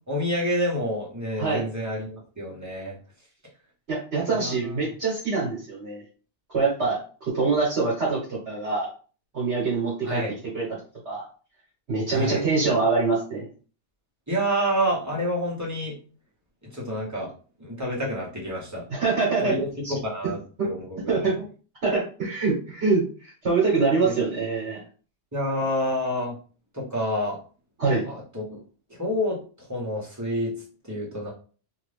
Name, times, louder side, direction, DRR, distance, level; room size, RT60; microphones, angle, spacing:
voice 1, 0.1-2.9 4.3-4.8 10.0-10.3 12.1-12.4 14.3-15.9 16.7-17.3 17.6-18.8 19.4-21.3 24.0-24.1 25.3-26.3 26.7-27.4 28.0-28.6 28.9-29.4 29.7-31.3, equal, 15° right, -5 dB, 1.0 m, -28 dB
voice 2, 3.9-6.0 6.5-8.9 9.3-10.8 11.0-11.3 11.9-13.5 18.9-20.0 20.6-20.7 21.1-21.4 21.8-24.8 27.8-28.0, right 4 dB, 65° right, -4 dB, 1.3 m, -25 dB
2.7 x 2.5 x 3.3 m, 0.38 s
omnidirectional pair, 1.2 m